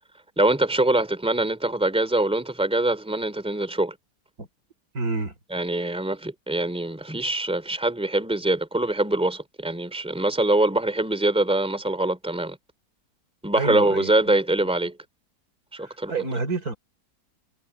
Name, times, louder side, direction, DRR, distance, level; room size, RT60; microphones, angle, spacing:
voice 1, 0.4-3.9 5.5-12.6 13.4-15.0 15.7-16.1, right 2 dB, 5° right, 3.0 m, -23 dB
voice 2, 4.9-5.3 13.6-14.1 15.8-16.8, right 3 dB, 60° right, 3.8 m, -28 dB
omnidirectional pair, 1.8 m